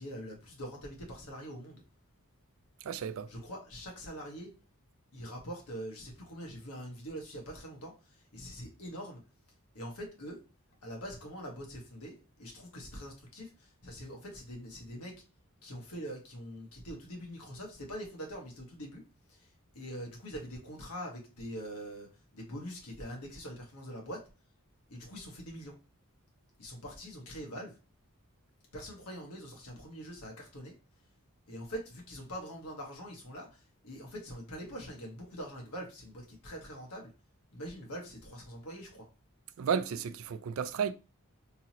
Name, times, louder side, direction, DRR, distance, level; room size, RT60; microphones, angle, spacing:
voice 1, 0.0-1.8 3.3-4.5 5.1-9.2 9.7-10.4 10.8-15.2 15.6-19.0 19.3-24.2 24.9-25.8 26.6-27.8 28.7-30.7 31.5-37.1 37.5-39.1, equal, 85° left, 1.4 m, -44 dB
voice 2, 2.8-3.3 39.6-40.9, right 7 dB, 65° right, 0.3 m, -33 dB
3.7 x 2.9 x 2.9 m
head